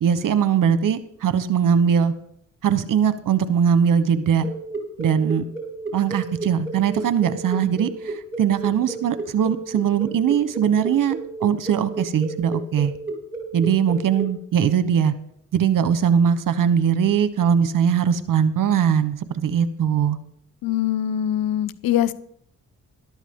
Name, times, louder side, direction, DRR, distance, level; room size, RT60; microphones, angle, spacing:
voice 1, 0.0-2.1 2.6-4.5 5.0-5.4 5.9-12.9 13.5-15.1 15.5-20.2, right 8 dB, 65° right, 13 dB, 1.1 m, -20 dB
sound 1, 4.4-14.2, right 4 dB, 35° right, 3.9 m, -32 dB
voice 2, 20.6-22.1, left 11 dB, 80° left, 16 dB, 0.7 m, -23 dB
13.0 x 12.0 x 3.7 m, 0.71 s
supercardioid pair, 55°, 35 cm